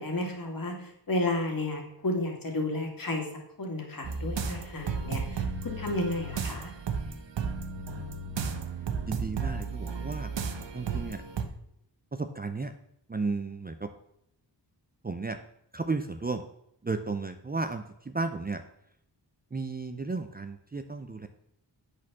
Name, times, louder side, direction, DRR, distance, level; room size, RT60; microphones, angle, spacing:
voice 1, 0.0-3.3 3.6-6.7, left 2 dB, 50° left, 1 dB, 2.5 m, -32 dB
sound 1, 4.0-11.5, right 5 dB, 75° right, 1.1 m, -33 dB
voice 2, 7.9-8.6 9.1-10.3 10.7-11.2 12.1-12.7 13.1-13.9 15.0-15.4 15.7-16.4 16.8-18.6 19.5-21.3, right 3 dB, 20° right, 7 dB, 0.6 m, -34 dB
8.5 x 6.6 x 6.2 m, 0.76 s
wide cardioid pair, 110°, 44 cm